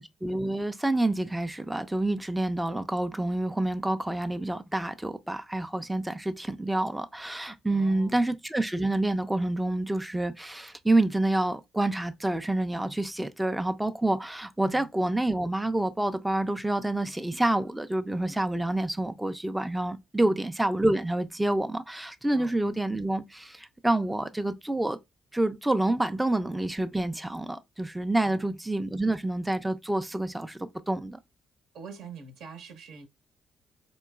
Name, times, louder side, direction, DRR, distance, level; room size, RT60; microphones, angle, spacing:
voice 1, 0.0-25.0 25.3-31.2, right 1 dB, 10° right, 0.3 m, -28 dB
voice 2, 7.7-8.2 14.6-14.9 20.2-20.4 22.3-22.5 28.2-28.5 31.7-33.1, right 6 dB, 85° right, 0.9 m, -45 dB
3.7 x 3.0 x 2.3 m
cardioid pair, 90°, 0 cm